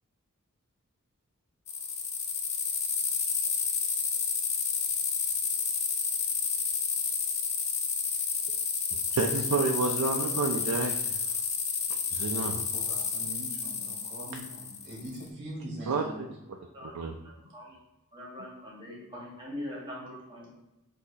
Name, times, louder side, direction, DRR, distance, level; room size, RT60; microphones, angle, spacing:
sound 1, 1.7-15.2, left 6 dB, 30° left, 0.5 m, -30 dB
voice 1, 9.1-11.2 12.1-12.6 15.9-17.2, right 4 dB, 85° right, 2 dB, 0.4 m, -30 dB
voice 2, 12.3-16.2, right 1 dB, 40° right, -3 dB, 1.1 m, -42 dB
voice 3, 17.2-17.7 18.1-20.5, left 1 dB, 20° right, -5 dB, 1.4 m, -42 dB
6.1 x 2.8 x 2.7 m, 0.95 s
head